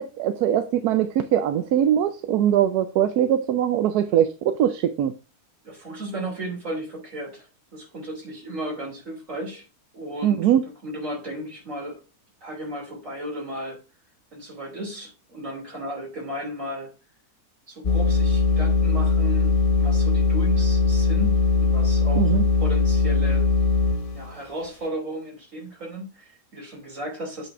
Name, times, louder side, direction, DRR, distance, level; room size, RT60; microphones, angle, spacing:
voice 1, 0.0-5.1 10.2-10.6 22.2-22.4, right 10 dB, 85° right, 1.1 m, -21 dB
voice 2, 5.6-7.5 7.7-9.6 9.9-10.5 10.8-12.0 12.4-13.8 14.3-16.9 17.7-23.4 24.1-27.5, right 1 dB, 55° right, 3.4 m, -35 dB
sound 1, 17.8-24.3, left 4 dB, 35° left, 1.1 m, -20 dB
8.0 x 4.2 x 4.7 m
omnidirectional pair, 1.6 m